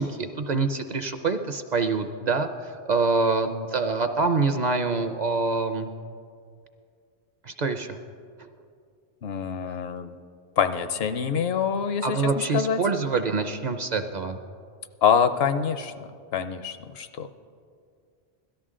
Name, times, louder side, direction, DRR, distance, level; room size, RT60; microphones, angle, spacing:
voice 1, 0.0-5.9 7.4-8.0 12.0-14.4, right 4 dB, 50° right, 8 dB, 0.6 m, -25 dB
voice 2, 9.2-10.2 10.6-12.8 15.0-17.3, left 7 dB, 70° left, 10 dB, 0.8 m, -25 dB
17.0 x 12.5 x 3.7 m, 2.3 s
omnidirectional pair, 1.1 m